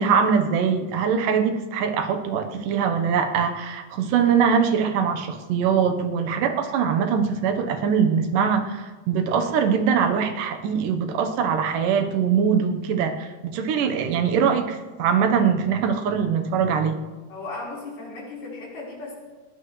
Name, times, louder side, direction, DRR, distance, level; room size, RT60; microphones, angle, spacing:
voice 1, 0.0-17.0, right 7 dB, 80° right, 7 dB, 2.7 m, -22 dB
voice 2, 17.3-19.2, left 3 dB, 75° left, -5 dB, 6.0 m, -36 dB
20.5 x 19.0 x 3.2 m, 1.3 s
omnidirectional pair, 3.8 m